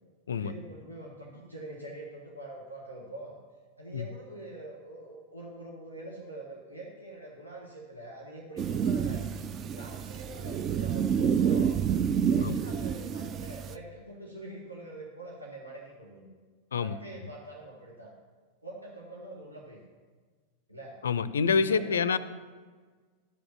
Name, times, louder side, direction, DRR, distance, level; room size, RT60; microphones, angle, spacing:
voice 1, 0.4-3.4 3.8-9.2 9.7-11.8 12.3-16.3 16.8-18.1 18.6-19.9 20.7-21.0 21.7-22.2, right 1 dB, 85° right, -3 dB, 1.4 m, -44 dB
sound 1, 8.6-13.8, right 7 dB, 30° right, 0.4 m, -28 dB
voice 2, 16.7-17.3 21.0-22.2, left 5 dB, 70° left, 15 dB, 0.4 m, -27 dB
12.5 x 5.2 x 5.8 m, 1.5 s
figure-of-eight pair, 90°, 0 cm